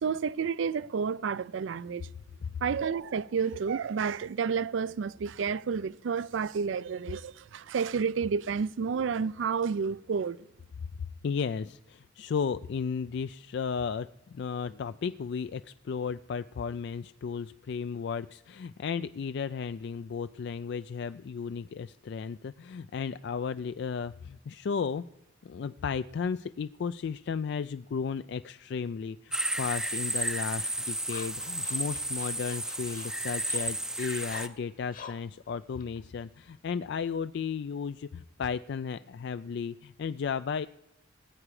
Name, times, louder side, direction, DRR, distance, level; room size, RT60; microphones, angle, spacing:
voice 1, 0.0-2.1 2.6-10.4, right 6 dB, 75° right, 0.4 m, -30 dB
voice 2, 11.2-25.1 25.4-40.7, left 6 dB, 60° left, 0.3 m, -34 dB
sound 1, 29.3-34.5, right 1 dB, 5° right, 0.5 m, -33 dB
sound 2, 30.3-36.8, left 5 dB, 45° left, 1.2 m, -49 dB
19.0 x 8.6 x 4.8 m
head